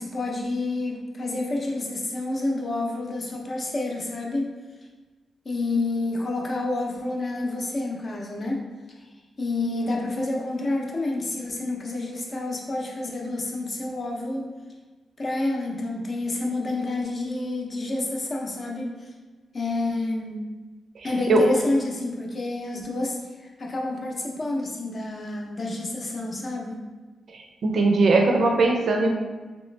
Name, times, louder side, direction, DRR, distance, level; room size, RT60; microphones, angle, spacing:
voice 1, 0.0-4.5 5.4-8.7 9.4-14.5 15.2-19.1 19.5-20.4 21.0-23.2 23.6-26.8, left 2 dB, 35° left, -1 dB, 0.6 m, -29 dB
voice 2, 21.0-21.4 27.3-29.1, right 3 dB, 60° right, 2 dB, 0.5 m, -21 dB
3.2 x 2.9 x 3.2 m, 1.3 s
wide cardioid pair, 135°, 0 cm